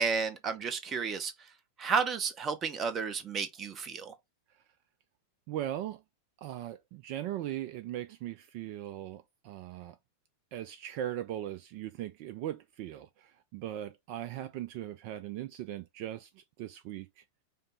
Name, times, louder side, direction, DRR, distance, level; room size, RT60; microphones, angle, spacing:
voice 1, 0.0-1.3 1.8-4.1, right 5 dB, 25° right, 0.7 m, -32 dB
voice 2, 5.5-6.0 6.4-10.0 10.5-17.2, right 12 dB, 45° right, 0.3 m, -39 dB
5.1 x 2.0 x 4.0 m
figure-of-eight pair, 90°, 0 cm